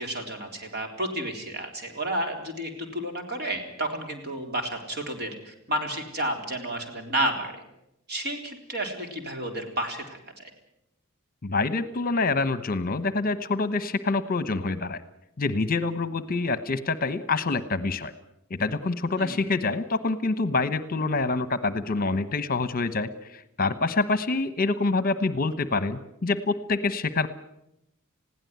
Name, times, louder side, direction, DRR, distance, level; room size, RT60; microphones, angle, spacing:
voice 1, 0.0-7.6 8.1-10.5 19.2-19.4, right 1 dB, 50° right, 4 dB, 3.9 m, -31 dB
voice 2, 11.4-15.0 15.4-18.1 18.5-27.3, left 3 dB, 40° left, 13 dB, 1.0 m, -26 dB
21.0 x 16.0 x 9.4 m, 0.83 s
head